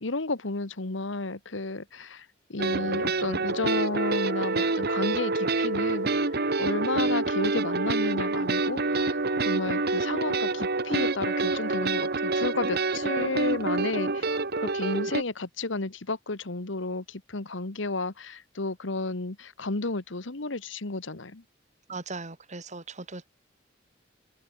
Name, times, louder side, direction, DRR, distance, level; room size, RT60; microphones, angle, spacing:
voice 1, 0.0-6.3 6.6-14.3 14.6-21.4, left 3 dB, 70° left, 1.6 m, -32 dB
sound 1, 2.6-15.2, right 3 dB, 55° right, 1.8 m, -27 dB
voice 2, 21.9-23.4, right 3 dB, 40° right, 3.8 m, -39 dB
head